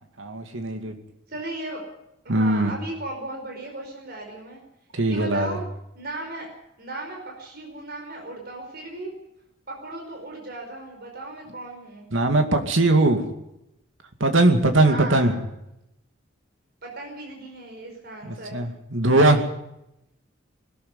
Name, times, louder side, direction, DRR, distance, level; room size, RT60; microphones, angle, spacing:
voice 1, 0.2-1.0 2.3-2.7 4.9-5.6 12.1-13.3 14.2-15.3 18.2-19.4, right 2 dB, 80° right, 6 dB, 2.4 m, -20 dB
voice 2, 1.3-1.8 2.2-4.6 5.1-5.6 5.9-6.5 6.8-9.1 9.7-12.0 14.8-15.4 16.8-18.6, right 2 dB, 50° right, 1 dB, 5.1 m, -36 dB
20.5 x 13.0 x 9.7 m, 0.85 s
head